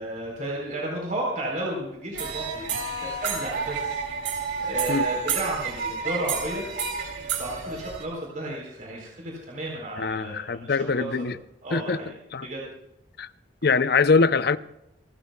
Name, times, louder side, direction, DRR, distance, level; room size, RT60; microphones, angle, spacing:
voice 1, 0.0-2.7 3.0-4.0 4.6-6.6 7.4-10.7 10.9-11.1 11.6-12.1 12.4-12.7, right 1 dB, 40° right, 4.0 m, -33 dB
sound 1, 2.1-8.1, right 5 dB, 70° right, 3.1 m, -30 dB
voice 2, 10.0-11.4 11.7-12.0 12.3-12.5 13.2-13.3 13.6-14.6, left 4 dB, 55° left, 0.6 m, -23 dB
28.0 x 13.5 x 2.3 m
head